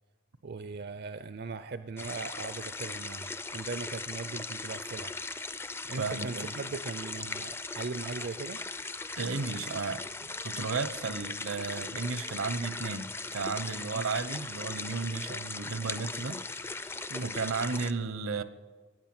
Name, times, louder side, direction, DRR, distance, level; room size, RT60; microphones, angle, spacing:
voice 1, 0.4-5.1 5.9-8.6 11.0-11.2 13.9-14.1 17.1-17.3, right 4 dB, 50° right, 0.5 m, -39 dB
sound 1, 2.0-17.9, left 3 dB, 10° left, 0.4 m, -39 dB
voice 2, 6.0-6.5 9.2-18.4, right 4 dB, 75° right, 0.9 m, -34 dB
17.5 x 9.1 x 8.9 m
head